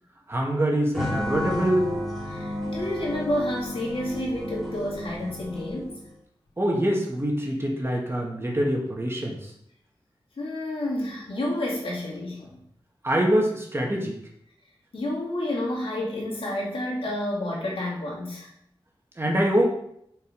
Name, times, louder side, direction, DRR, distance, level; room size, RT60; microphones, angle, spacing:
voice 1, 0.3-1.9 6.6-9.5 13.0-14.2 19.2-19.6, right 1 dB, 25° right, -1 dB, 1.9 m, -24 dB
sound 1, 0.9-6.1, left 1 dB, ahead, 2.7 m, -32 dB
voice 2, 2.3-6.0 10.4-12.6 14.9-18.5, left 1 dB, 80° left, -5 dB, 2.5 m, -30 dB
6.4 x 5.2 x 5.4 m, 0.72 s
wide cardioid pair, 95°, 9 cm